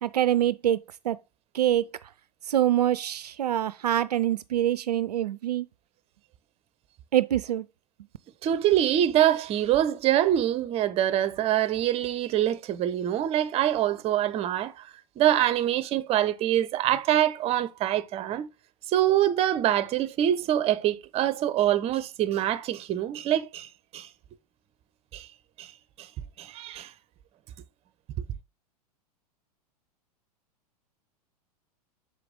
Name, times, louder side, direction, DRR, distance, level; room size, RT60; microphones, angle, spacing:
voice 1, 0.0-1.2 1.5-1.9 2.5-5.6 7.1-7.7, right 11 dB, 75° right, 0.4 m, -25 dB
voice 2, 8.4-14.7 15.2-18.5 18.9-23.7 23.9-24.1 25.1-25.3 25.6-25.7 26.0-26.1 26.4-26.9, right 12 dB, 30° right, 0.6 m, -25 dB
6.7 x 4.9 x 3.6 m
figure-of-eight pair, 95°, 20 cm